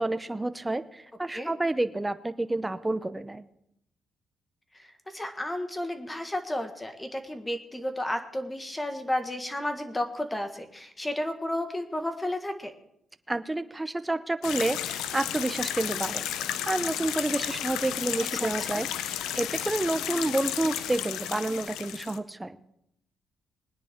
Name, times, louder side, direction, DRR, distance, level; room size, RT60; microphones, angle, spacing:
voice 1, 0.0-3.4 13.3-16.3 16.7-22.6, right 2 dB, 15° right, 12 dB, 0.8 m, -29 dB
voice 2, 4.7-12.7 18.3-18.8, left 1 dB, 15° left, 7 dB, 1.6 m, -32 dB
sound 1, 14.4-22.2, left 11 dB, 90° left, 0.7 m, -33 dB
21.0 x 9.9 x 3.7 m, 0.77 s
cardioid pair, 90°, 0 cm